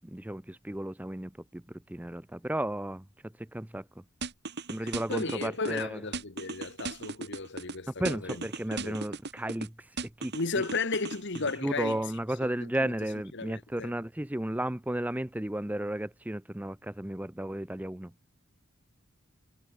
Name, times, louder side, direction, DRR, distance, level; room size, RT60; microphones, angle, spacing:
voice 1, 0.0-1.6 1.9-3.0 3.5-3.8 4.7-6.0 8.0-9.7 10.2-10.3 11.6-18.1, right 1 dB, 10° right, 0.6 m, -33 dB
sound 1, 4.2-5.8 6.1-7.8 8.1-9.7 10.0-11.6, right 3 dB, 55° right, 2.0 m, -37 dB
voice 2, 4.8-9.0 10.3-12.0 12.4-12.9 13.3-13.9, left 3 dB, 60° left, 1.8 m, -35 dB
head